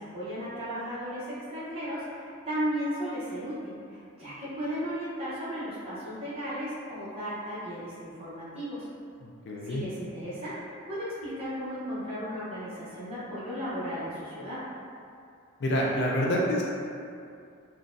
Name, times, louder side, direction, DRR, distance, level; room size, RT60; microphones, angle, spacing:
voice 1, 0.0-8.9 9.6-14.6, equal, 25° right, -10 dB, 0.8 m, -35 dB
voice 2, 9.2-9.8 15.6-16.7, equal, 50° left, -3 dB, 0.3 m, -27 dB
3.8 x 2.2 x 2.5 m, 2.4 s
head